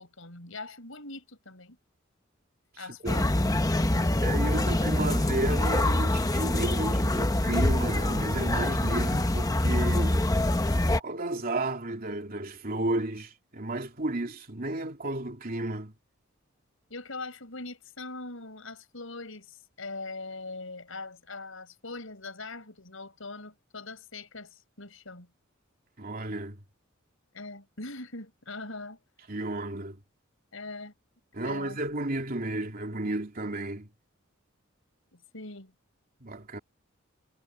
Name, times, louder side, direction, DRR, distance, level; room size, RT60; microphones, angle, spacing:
voice 1, 0.0-1.8 2.8-3.5 16.9-25.3 27.3-29.0 30.5-30.9 31.4-31.8 35.1-35.7, left 3 dB, 75° left, 6.4 m, -42 dB
voice 2, 2.7-3.2 4.2-10.2 11.0-15.9 26.0-26.6 29.3-30.0 31.3-33.9 36.2-36.6, right 2 dB, 45° right, 3.1 m, -33 dB
sound 1, 3.1-11.0, left 1 dB, 20° left, 0.9 m, -25 dB
head